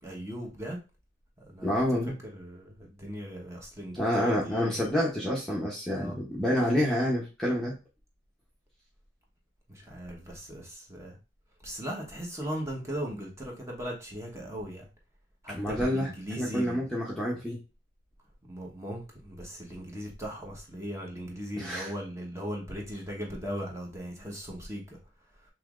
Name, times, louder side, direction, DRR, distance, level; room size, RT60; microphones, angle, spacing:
voice 1, 0.0-0.8 1.5-1.7 2.3-4.8 5.9-6.1 9.7-11.2 11.6-14.9 15.4-16.8 18.5-24.8, equal, 15° right, -1 dB, 1.1 m, -38 dB
voice 2, 1.6-2.2 3.9-7.7 15.5-16.1 16.4-17.6 21.6-21.9, equal, 5° left, -5 dB, 0.8 m, -28 dB
5.5 x 3.1 x 2.5 m, 0.31 s
head